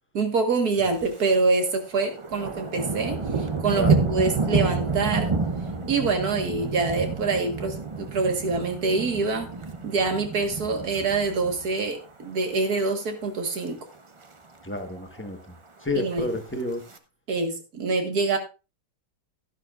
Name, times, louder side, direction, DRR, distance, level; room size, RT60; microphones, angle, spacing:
voice 1, 0.1-5.4 5.9-9.5 9.8-13.8 16.0-16.3 17.3-18.4, right 3 dB, 65° right, 5 dB, 2.1 m, -25 dB
Thunder, 0.9-1.4 1.7-12.1 12.4-12.8 13.2-13.7 13.9-14.0 14.2-14.3 14.7-15.3 16.0-17.0, right 4 dB, 30° right, 0.6 m, -29 dB
voice 2, 3.8-4.1 14.6-15.4 15.8-16.8, left 1 dB, 10° left, 5 dB, 1.2 m, -30 dB
12.5 x 11.0 x 2.5 m, 0.29 s
omnidirectional pair, 1.8 m